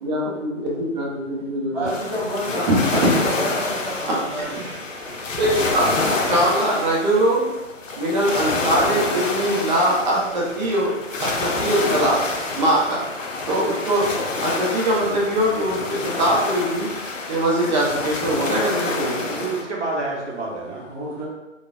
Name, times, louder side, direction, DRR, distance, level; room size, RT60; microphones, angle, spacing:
voice 1, 0.0-1.9 2.5-3.1 4.1-4.4 5.4-5.8 6.3-7.5 8.0-10.9 11.2-12.3 12.5-13.0 13.5-14.1 14.4-16.9 17.3-19.5, right 1 dB, 35° right, -4 dB, 0.9 m, -22 dB
voice 2, 1.7-2.6 2.9-4.8 20.9-21.2, right 1 dB, 5° right, -16 dB, 0.5 m, -30 dB
sound 1, 1.9-19.6, left 3 dB, 85° left, 0.7 m, -28 dB
voice 3, 19.3-20.9, right 3 dB, 65° right, -2 dB, 1.2 m, -29 dB
4.1 x 2.4 x 2.4 m, 1.1 s
figure-of-eight pair, 140°, 38 cm